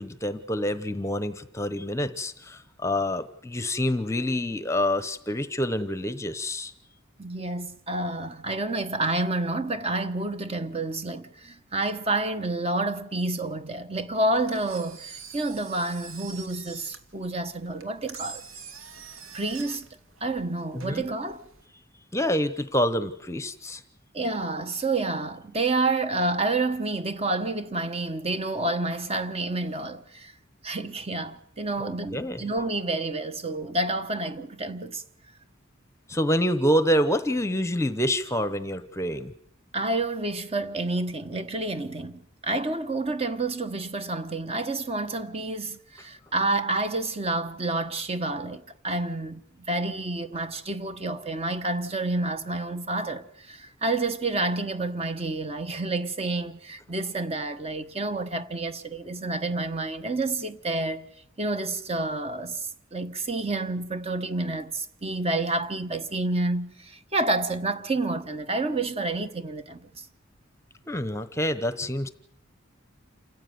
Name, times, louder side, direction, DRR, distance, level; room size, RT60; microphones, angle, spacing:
voice 1, 0.0-6.7 20.7-21.0 22.1-23.8 31.8-32.4 36.1-39.3 70.9-72.1, equal, 15° left, 0.9 m, -27 dB
voice 2, 7.2-18.4 19.3-19.9 20.2-21.5 24.1-30.3 30.6-35.0 39.7-61.1 61.4-70.1, right 2 dB, 30° right, 1.1 m, -29 dB
Engine, 14.3-21.7, right 5 dB, 75° right, 2.6 m, -45 dB
28.0 x 15.5 x 9.5 m
head